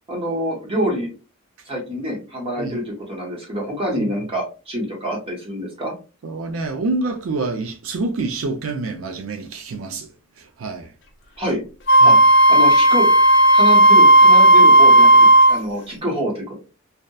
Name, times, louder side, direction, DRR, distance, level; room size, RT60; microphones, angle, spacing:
voice 1, 0.1-1.1 1.7-5.9 11.4-11.6 12.0-12.1 12.5-13.1 13.5-15.1 15.5-16.6, equal, 25° right, 0.8 m, -26 dB
voice 2, 6.2-10.1 10.4-10.9 12.0-12.2, right 3 dB, 75° right, 0.4 m, -27 dB
Wind instrument woodwind instrument, 11.9-15.6, right 1 dB, 55° left, 0.4 m, -11 dB
2.7 x 2.1 x 2.2 m
head